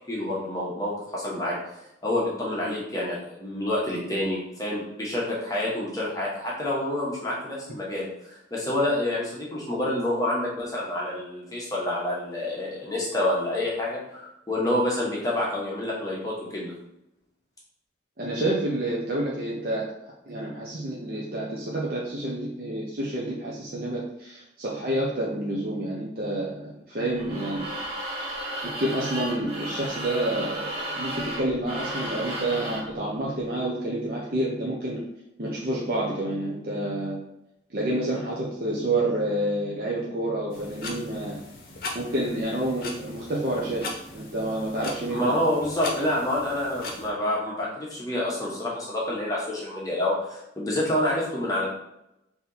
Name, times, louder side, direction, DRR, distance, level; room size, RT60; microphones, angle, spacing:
voice 1, 0.1-1.6 2.0-16.8 45.1-51.7, left 1 dB, 20° left, -5 dB, 1.1 m, -28 dB
voice 2, 18.2-19.9 20.2-27.7 28.1-28.3 28.6-35.0 35.4-37.2 37.7-41.4 41.9-45.3, right 1 dB, 50° right, -4 dB, 0.7 m, -29 dB
sound 1, 27.2-32.9, right 1 dB, 30° right, 1.1 m, -34 dB
sound 2, 40.5-47.1, left 2 dB, 50° left, 0.8 m, -39 dB
4.1 x 2.8 x 4.0 m, 0.85 s
head